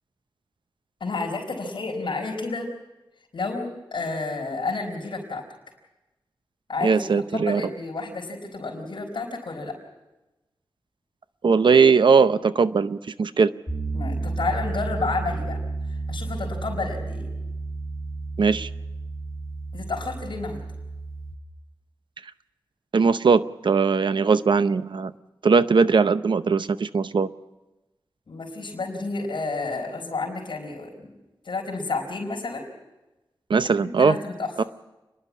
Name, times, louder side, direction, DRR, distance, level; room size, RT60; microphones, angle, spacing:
voice 1, 1.0-2.7 3.3-5.4 6.7-7.0 7.3-9.7 13.9-15.6 15.9-17.3 19.7-20.6 28.3-31.1 31.4-32.6 33.8-34.5, left 3 dB, 75° left, -1 dB, 4.6 m, -30 dB
voice 2, 6.8-7.6 11.4-13.5 18.4-18.7 22.9-25.1 25.4-27.3 33.5-34.2 34.6-34.7, right 5 dB, 70° right, 13 dB, 0.7 m, -19 dB
Piano, 13.7-21.3, right 3 dB, 20° left, 2.5 m, -32 dB
29.5 x 11.0 x 8.4 m, 1.0 s
wide cardioid pair, 90°, 8 cm